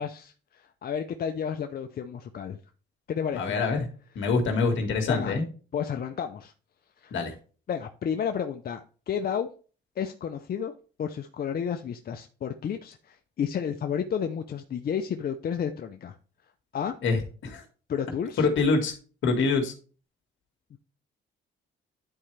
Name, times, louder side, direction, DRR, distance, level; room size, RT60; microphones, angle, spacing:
voice 1, 0.0-2.6 3.1-3.6 5.1-5.4 5.7-6.5 7.0-7.1 7.7-9.5 10.0-10.7 11.0-16.1 16.7-17.0 17.9-18.5 20.7-20.8, left 7 dB, 50° left, 6 dB, 0.7 m, -31 dB
voice 2, 3.3-3.9 4.2-5.4 7.1-7.3 17.0-17.6 18.4-18.9 19.2-19.7, left 4 dB, 70° left, 4 dB, 2.0 m, -25 dB
11.0 x 4.3 x 3.3 m, 0.38 s
cardioid pair, 90°, 20 cm